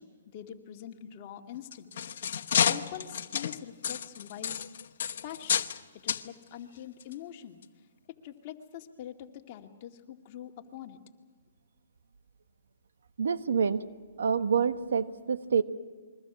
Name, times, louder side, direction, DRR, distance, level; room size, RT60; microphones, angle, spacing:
voice 1, 0.0-1.9 2.7-4.6 5.2-5.7 6.0-7.6 8.2-11.0, left 10 dB, 40° left, 3 dB, 2.2 m, -44 dB
sound 1, 1.5-5.8 6.1-6.3 7.0-7.1 7.6-7.7, left 8 dB, 60° left, 1.0 m, -30 dB
voice 2, 13.2-13.8 14.2-15.6, right 6 dB, 75° right, 10 dB, 1.3 m, -27 dB
28.5 x 22.5 x 6.2 m, 1.5 s
hypercardioid pair, 145°, 0 cm